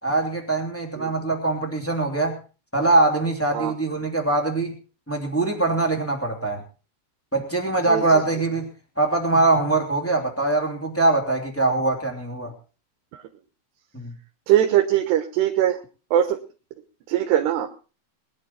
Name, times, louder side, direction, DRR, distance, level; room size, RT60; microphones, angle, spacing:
voice 1, 0.0-2.4 2.7-4.8 5.1-6.6 7.3-12.5 13.9-14.1, right 2 dB, 5° left, 0 dB, 1.5 m, -22 dB
voice 2, 7.8-8.2 13.1-13.2 14.5-15.8 16.1-16.4 17.1-17.7, right 11 dB, 70° right, 5 dB, 3.1 m, -21 dB
21.5 x 10.5 x 4.3 m, 0.36 s
omnidirectional pair, 5.3 m